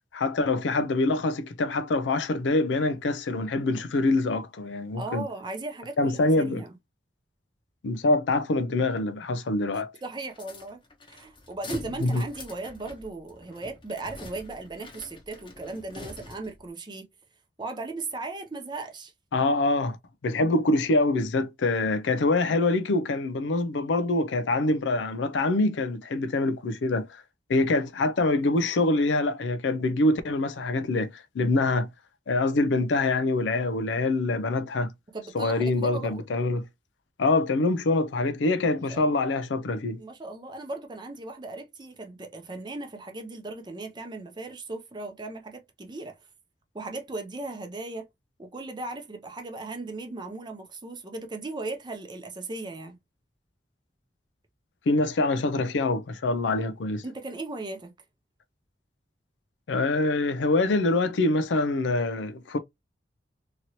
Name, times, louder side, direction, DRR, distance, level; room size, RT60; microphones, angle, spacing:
voice 1, 0.1-5.2 6.0-6.6 7.8-9.9 12.0-12.2 19.3-20.0 20.2-27.2 27.5-31.9 32.3-34.9 35.3-36.7 37.2-40.0 54.9-57.0 59.7-62.6, left 2 dB, 85° left, 0.4 m, -25 dB
voice 2, 5.0-6.8 10.0-10.8 11.1-17.1 17.6-19.1 35.1-36.2 38.9-39.3 40.0-46.2 46.7-48.1 48.4-53.0 57.0-57.9, right 2 dB, 25° right, 0.5 m, -37 dB
sound 1, 10.3-16.7, left 2 dB, 30° left, 0.8 m, -44 dB
2.9 x 2.7 x 2.8 m
head